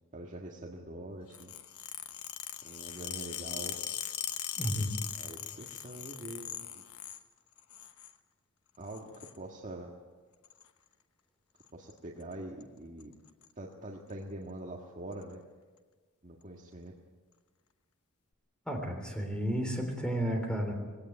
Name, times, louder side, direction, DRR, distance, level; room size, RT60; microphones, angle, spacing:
voice 1, 0.1-1.5 2.6-3.8 5.2-6.8 8.8-9.9 11.7-13.1 13.6-15.4 16.2-16.9, right 1 dB, 35° right, -1 dB, 1.7 m, -44 dB
sound 1, 1.3-7.2 7.6-8.1 8.9-9.4 10.4-10.7 11.6-11.9 12.2-12.3 12.6-12.7 13.0-13.5 14.1-14.2 15.1-15.2, left 10 dB, 80° left, 1.1 m, -40 dB
voice 2, 4.6-5.0 18.7-20.7, equal, 5° left, 3 dB, 3.6 m, -32 dB
20.0 x 17.0 x 8.8 m, 1.4 s
head